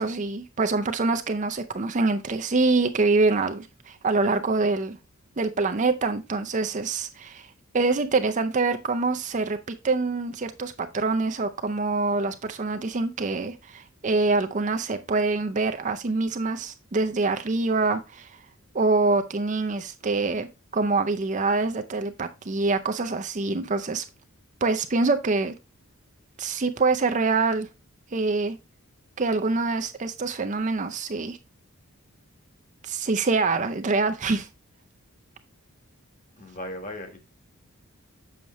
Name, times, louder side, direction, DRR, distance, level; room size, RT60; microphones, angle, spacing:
voice 1, 0.0-5.0 5.4-7.5 7.7-9.6 9.8-18.3 18.7-20.5 20.7-24.0 24.6-25.5 26.4-27.7 28.1-28.6 29.2-31.4 32.8-34.5, right 3 dB, 35° right, 0.5 m, -25 dB
voice 2, 36.4-37.2, left 1 dB, 35° left, 1.3 m, -37 dB
7.1 x 5.9 x 3.0 m
head